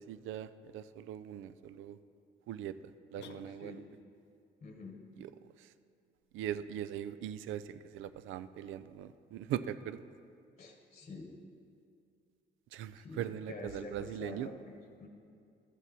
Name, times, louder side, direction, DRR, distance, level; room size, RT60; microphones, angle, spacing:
voice 1, 0.0-2.0 2.5-2.7 3.1-3.8 5.2-5.3 5.6-5.7 6.3-10.0 12.7-14.5, right 10 dB, 85° right, 14 dB, 0.4 m, -40 dB
sound 1, 3.2-4.1, left 8 dB, 60° left, 0.5 m, -54 dB
voice 2, 3.5-3.8 4.6-5.0 10.6-11.4 12.9-15.1, left 3 dB, 35° left, 3 dB, 1.1 m, -47 dB
12.5 x 7.2 x 4.1 m, 2.4 s
cardioid pair, 90°, 20 cm